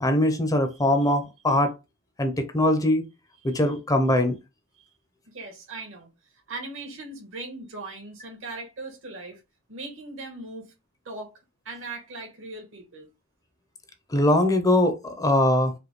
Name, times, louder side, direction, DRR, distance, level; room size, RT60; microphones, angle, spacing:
voice 1, 0.0-1.7 2.2-3.1 3.4-4.4 14.1-15.7, left 1 dB, 15° left, 0.6 m, -22 dB
voice 2, 5.3-6.1 6.5-9.4 9.7-10.7 11.0-11.4 11.6-13.1, right 2 dB, 70° right, 1.4 m, -39 dB
5.0 x 2.2 x 3.1 m
head